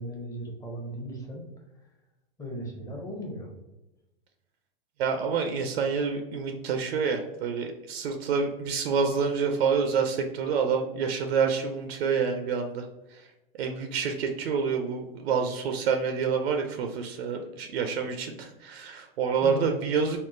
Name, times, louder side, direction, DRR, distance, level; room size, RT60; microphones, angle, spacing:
voice 1, 0.0-1.4 2.4-3.5 19.4-19.7, equal, 10° left, 0 dB, 0.6 m, -36 dB
voice 2, 5.0-12.9 13.1-13.3 13.6-20.2, right 6 dB, 80° right, 5 dB, 0.5 m, -28 dB
3.6 x 2.1 x 2.5 m, 1.0 s
hypercardioid pair, 120°, 30 cm